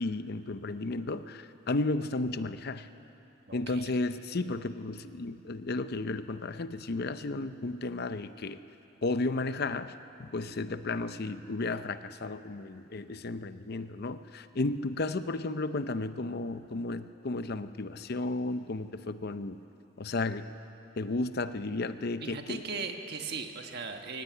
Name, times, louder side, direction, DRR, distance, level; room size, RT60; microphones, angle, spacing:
voice 1, 0.0-2.9 3.5-8.6 9.0-19.6 20.0-20.5 21.0-22.6, left 2 dB, 50° left, 11 dB, 0.6 m, -33 dB
voice 2, 3.5-3.9 22.2-24.2, right 4 dB, 55° right, 4 dB, 1.4 m, -38 dB
22.0 x 18.0 x 9.3 m, 2.9 s
head